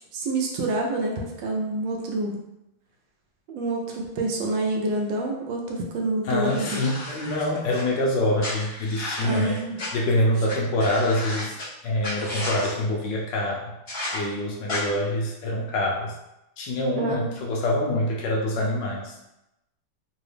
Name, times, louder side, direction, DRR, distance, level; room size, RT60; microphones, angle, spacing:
voice 1, 0.1-2.4 3.5-6.8 9.2-9.8 16.9-17.4, right 2 dB, 75° right, 0 dB, 1.3 m, -27 dB
voice 2, 6.2-9.6 9.9-11.6 11.8-13.7 14.1-16.1 16.6-19.2, left 1 dB, 70° left, -2 dB, 1.2 m, -25 dB
sound 1, 6.4-7.8 8.4-9.9 10.5-10.6 10.8-11.6 12.0-12.7 13.9-14.2 14.7-14.8, left 1 dB, 40° left, 1.1 m, -33 dB
3.9 x 2.7 x 3.2 m, 0.90 s
omnidirectional pair, 2.2 m